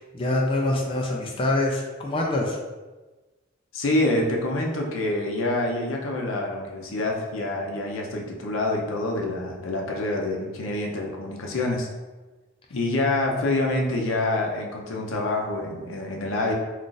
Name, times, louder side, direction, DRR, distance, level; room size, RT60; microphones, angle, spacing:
voice 1, 0.1-2.6, left 2 dB, 25° left, -1 dB, 0.4 m, -25 dB
voice 2, 3.7-11.9 12.7-16.5, left 2 dB, 85° left, 0 dB, 0.6 m, -26 dB
2.4 x 2.4 x 3.8 m, 1.2 s
head